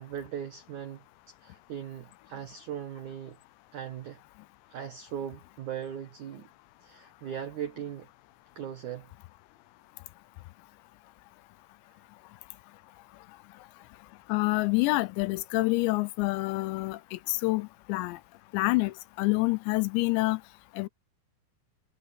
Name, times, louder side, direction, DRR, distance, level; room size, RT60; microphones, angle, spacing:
voice 1, 0.0-3.4 3.7-4.2 4.7-6.5 6.8-8.1 8.6-9.1, right 9 dB, 80° right, 1.7 m, -39 dB
voice 2, 14.3-18.2 18.5-20.4 20.7-20.9, left 22 dB, 80° left, 2.7 m, -27 dB
omnidirectional pair, 5.4 m